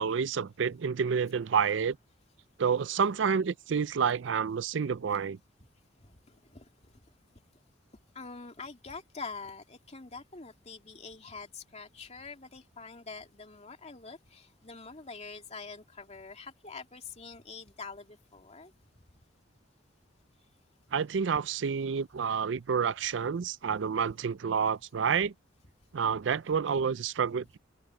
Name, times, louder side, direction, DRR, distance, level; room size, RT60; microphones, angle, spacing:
voice 1, 0.0-2.0 2.6-5.4 20.9-25.3 25.9-27.6, right 6 dB, 70° right, 0.4 m, -29 dB
voice 2, 6.0-6.6 8.1-18.7, left 4 dB, 35° left, 2.6 m, -45 dB
head